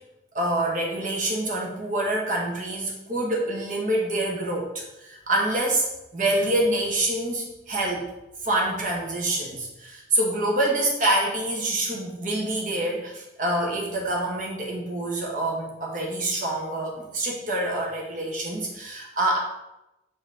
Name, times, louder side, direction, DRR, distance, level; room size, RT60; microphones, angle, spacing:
voice 1, 0.3-5.9 6.1-8.1 8.4-19.4, right 1 dB, 45° right, -1 dB, 1.4 m, -26 dB
8.0 x 4.0 x 4.0 m, 0.92 s
head